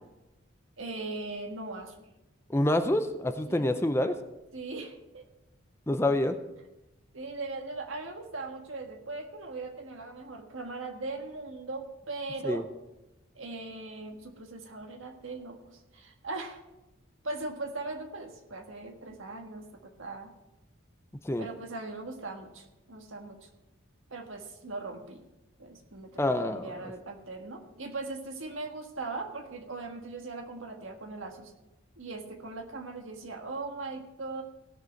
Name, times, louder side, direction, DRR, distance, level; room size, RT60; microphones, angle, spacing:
voice 1, 0.8-2.0 3.5-3.7 4.5-5.2 7.1-12.6 13.3-16.6 17.2-20.3 21.4-23.5 24.1-25.2 25.6-31.5 32.0-34.4, right 3 dB, 80° right, 4 dB, 1.6 m, -39 dB
voice 2, 2.5-4.1 5.9-6.4 12.4-12.6 21.2-21.5 26.2-26.9, left 1 dB, 10° left, 8 dB, 0.5 m, -27 dB
17.0 x 6.6 x 4.5 m, 0.98 s
head